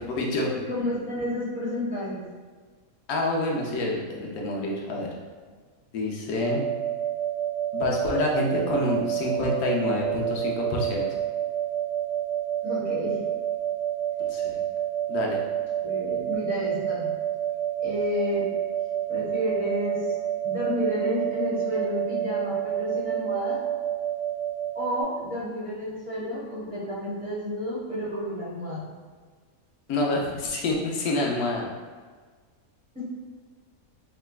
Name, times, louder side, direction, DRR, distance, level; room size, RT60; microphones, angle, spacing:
voice 1, 0.0-0.6 3.1-5.1 5.9-6.6 7.7-11.2 14.2-14.6 15.1-15.4 29.9-31.7, left 2 dB, 80° left, -2 dB, 1.1 m, -27 dB
voice 2, 0.7-2.2 12.6-13.2 15.8-17.1 17.8-18.5 19.1-20.2 20.4-23.6 24.7-28.9 32.9-33.0, left 1 dB, 5° right, -10 dB, 1.1 m, -30 dB
sound 1, 6.4-25.0, right 11 dB, 55° left, 1.2 m, -29 dB
3.3 x 2.8 x 2.3 m, 1.5 s
omnidirectional pair, 1.5 m